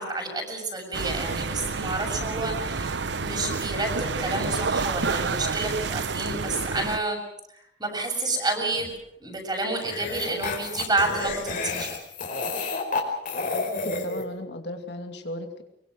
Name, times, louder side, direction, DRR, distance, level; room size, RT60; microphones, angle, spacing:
voice 1, 0.0-7.2 7.8-8.9 9.2-11.9, right 2 dB, 25° right, 2 dB, 7.0 m, -29 dB
Shenzhen roof ambience, 0.9-7.0, right 4 dB, 70° right, 0.9 m, -29 dB
sound 1, 8.7-8.9 9.8-14.2, left 3 dB, 50° left, 4.9 m, -30 dB
voice 2, 13.6-15.6, left 1 dB, 70° left, 5 dB, 2.8 m, -36 dB
24.0 x 23.5 x 6.3 m, 0.76 s
head